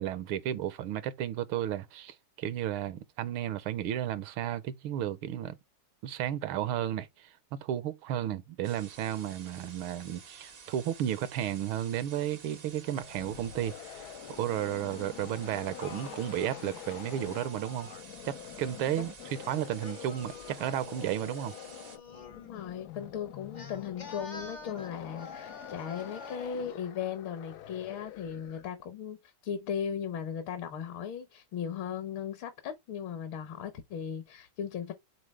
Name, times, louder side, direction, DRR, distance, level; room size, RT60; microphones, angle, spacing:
voice 1, 0.0-5.6 6.0-13.8 14.4-17.9 18.2-21.5, right 11 dB, 80° right, 1.5 m, -33 dB
sound 1, 8.6-22.0, right 6 dB, 65° right, 0.6 m, -51 dB
sound 2, 12.7-28.8, left 12 dB, 85° left, 0.8 m, -47 dB
Singing, 15.4-18.2 19.3-22.5 23.5-26.6, left 3 dB, 55° left, 0.5 m, -48 dB
voice 2, 22.3-34.9, left 8 dB, 70° left, 1.7 m, -37 dB
7.6 x 4.0 x 3.2 m
omnidirectional pair, 2.4 m